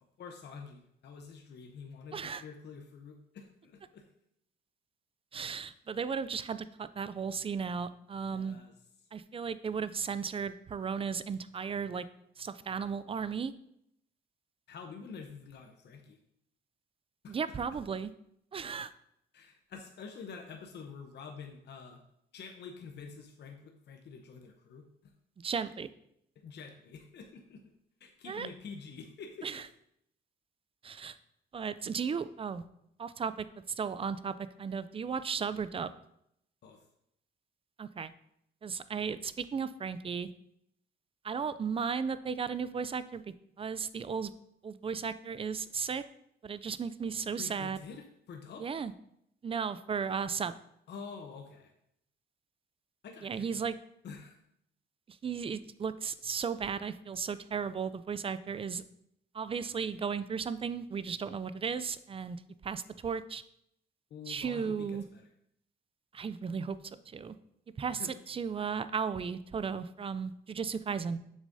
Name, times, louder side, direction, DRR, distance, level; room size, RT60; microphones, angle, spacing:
voice 1, 0.2-4.0 8.3-8.7 14.7-16.2 17.2-17.4 19.3-22.0 22.3-25.1 26.4-27.7 28.0-29.5 36.6-36.8 47.4-48.7 50.9-51.7 53.0-53.7 54.0-54.4 64.1-65.3 68.0-68.1, left 5 dB, 60° left, 3 dB, 0.8 m, -47 dB
voice 2, 2.1-2.4 5.3-8.6 9.1-12.1 12.4-13.5 17.3-18.1 18.5-18.9 25.4-25.9 28.3-28.5 29.4-29.6 30.8-31.2 31.5-32.6 33.0-33.5 33.8-35.9 37.8-38.1 38.6-40.3 41.2-44.3 44.6-46.0 46.4-47.8 48.6-48.9 49.4-50.6 53.2-53.8 55.1-58.8 59.3-62.4 62.6-63.4 64.3-65.0 66.1-66.8 67.1-67.3 67.8-71.2, right 6 dB, 30° right, 14 dB, 0.4 m, -35 dB
7.2 x 6.4 x 2.7 m, 0.75 s
cardioid pair, 90°, 20 cm